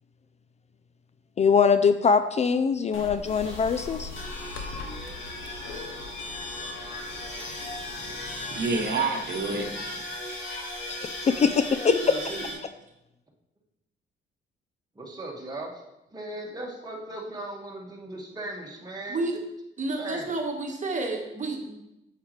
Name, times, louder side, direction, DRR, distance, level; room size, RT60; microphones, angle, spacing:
voice 1, 1.4-4.1 10.9-11.8, left 5 dB, 35° left, 11 dB, 0.4 m, -22 dB
sound 1, 2.9-8.9, left 5 dB, 85° left, 1.0 m, -42 dB
sound 2, 3.2-12.5, left 1 dB, 70° left, 2.3 m, -37 dB
voice 2, 8.0-10.0, right 4 dB, 60° right, 4 dB, 1.1 m, -30 dB
voice 3, 11.9-12.4 19.1-19.4 19.8-22.0, right 2 dB, 40° right, 3 dB, 1.4 m, -31 dB
voice 4, 15.0-15.8 16.1-19.2 20.0-20.3, right 1 dB, 20° right, -1 dB, 1.7 m, -37 dB
8.3 x 6.6 x 3.2 m, 0.90 s
cardioid pair, 90°, 20 cm